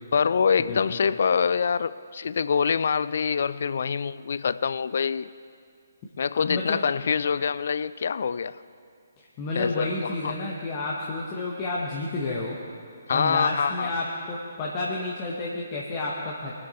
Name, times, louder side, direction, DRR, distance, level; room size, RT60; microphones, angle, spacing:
voice 1, 0.1-5.3 6.2-8.6 9.5-10.4 13.1-13.9, left 6 dB, 55° left, 17 dB, 0.4 m, -25 dB
voice 2, 0.7-1.0 6.4-6.8 9.4-12.6 13.1-16.5, left 2 dB, 30° left, -4 dB, 1.3 m, -30 dB
23.0 x 7.8 x 4.4 m, 2.2 s
figure-of-eight pair, 135°, 0 cm